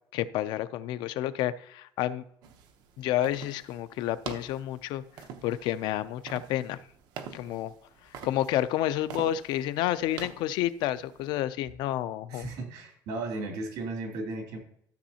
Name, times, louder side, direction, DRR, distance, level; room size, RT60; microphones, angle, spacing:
voice 1, 0.1-2.2 3.0-5.0 5.4-6.8 7.3-7.7 8.2-12.5, left 13 dB, 75° left, 14 dB, 0.5 m, -30 dB
sound 1, 2.4-11.4, right 7 dB, 65° right, 0.9 m, -46 dB
voice 2, 12.3-14.6, right 2 dB, 80° right, 1 dB, 2.8 m, -35 dB
13.0 x 6.9 x 2.8 m, 0.69 s
cardioid pair, 155°, 8 cm